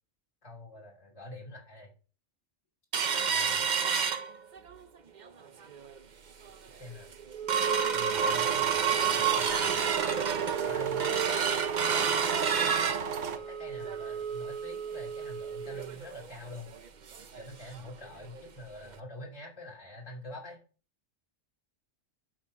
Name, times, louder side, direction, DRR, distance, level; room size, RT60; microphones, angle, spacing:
voice 1, 0.4-1.9 3.2-3.9 6.8-7.1 7.9-9.8 10.3-11.2 11.8-12.4 13.0-16.7 17.3-20.6, left 1 dB, 85° left, -4 dB, 3.3 m, -46 dB
sound 1, 2.9-4.8 5.2-5.3 5.6-6.0 6.5-6.6 6.9-17.4 17.8-17.9 18.2-18.4 18.9-19.0, right 7 dB, 45° right, 0.7 m, -30 dB
sound 2, 8.1-13.4, right 6 dB, 80° right, 1.2 m, -36 dB
12.0 x 4.3 x 5.8 m, 0.37 s
omnidirectional pair, 1.3 m